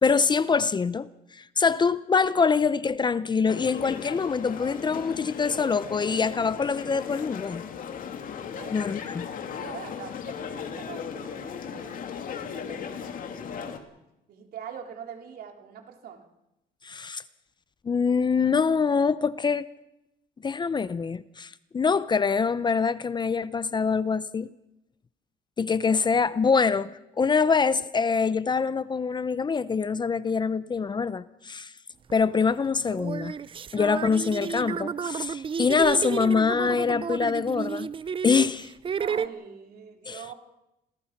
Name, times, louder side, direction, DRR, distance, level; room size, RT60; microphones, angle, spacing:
voice 1, 0.0-1.1 1.6-7.6 8.7-9.3 16.8-17.2 17.8-19.7 20.4-24.5 25.6-31.7 32.1-33.3 33.7-37.9 38.2-38.7 40.1-40.2, left 5 dB, 25° left, 0.7 m, -24 dB
sound 1, 3.4-13.8, left 7 dB, 55° left, 2.5 m, -37 dB
voice 2, 9.6-13.8 14.3-16.3 39.0-40.3, right 8 dB, 65° right, 3.5 m, -43 dB
sound 2, 32.1-32.2 32.9-39.3, right 7 dB, 30° right, 0.7 m, -32 dB
27.0 x 18.5 x 6.0 m
cardioid pair, 110°, 17 cm